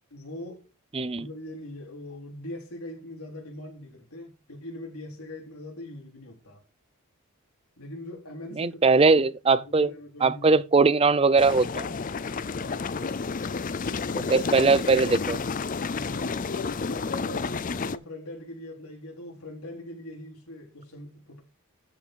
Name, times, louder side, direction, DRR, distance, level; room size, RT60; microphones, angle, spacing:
voice 1, 0.1-0.7 1.1-6.6 7.8-9.3 9.5-10.7 12.6-12.9 13.9-15.4 15.9-21.4, left 1 dB, 85° left, 3.8 m, -41 dB
voice 2, 0.9-1.3 8.6-9.9 10.2-11.9 13.0-13.1 14.3-15.4, right 4 dB, 25° right, 0.5 m, -21 dB
sound 1, 11.4-18.0, left 4 dB, 35° left, 0.5 m, -31 dB
13.5 x 5.8 x 4.6 m
head